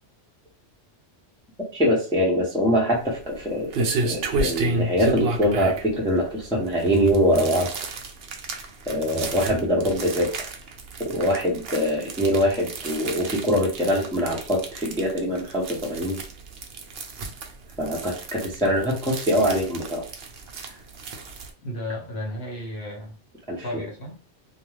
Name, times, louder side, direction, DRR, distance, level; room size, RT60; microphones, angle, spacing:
voice 1, 1.7-7.7 8.9-10.5 11.0-16.2 17.8-20.0 23.5-23.6, equal, 5° left, -2 dB, 0.5 m, -23 dB
sound 1, 2.9-21.5, right 3 dB, 60° right, 0.7 m, -32 dB
voice 2, 21.6-23.2 23.6-24.2, left 1 dB, 55° left, 0 dB, 1.1 m, -33 dB
2.4 x 2.3 x 3.1 m, 0.42 s
omnidirectional pair, 1.3 m